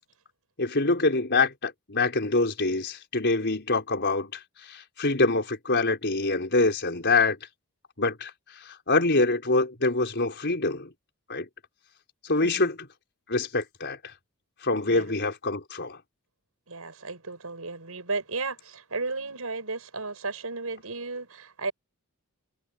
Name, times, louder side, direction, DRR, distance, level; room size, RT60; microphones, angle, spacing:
voice 1, 0.6-4.4 4.7-7.4 8.0-8.3 8.6-10.9 11.3-11.5 12.2-12.9 13.3-14.0 14.6-16.0, left 3 dB, 55° left, 4.9 m, -25 dB
voice 2, 16.7-21.7, right 3 dB, 80° right, 5.4 m, -34 dB
head